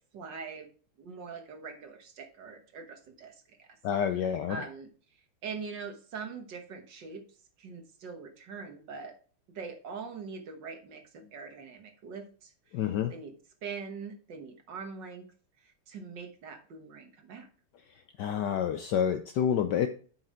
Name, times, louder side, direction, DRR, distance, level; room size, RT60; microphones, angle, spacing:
voice 1, 0.1-0.7 1.0-3.8 4.2-9.1 9.5-12.8 13.1-13.3 13.6-15.3 15.6-17.5, right 5 dB, 60° right, 5 dB, 1.8 m, -43 dB
voice 2, 3.8-4.6 12.7-13.1 18.2-19.9, left 8 dB, 75° left, 8 dB, 1.0 m, -28 dB
7.7 x 6.0 x 4.3 m, 0.42 s
omnidirectional pair, 2.4 m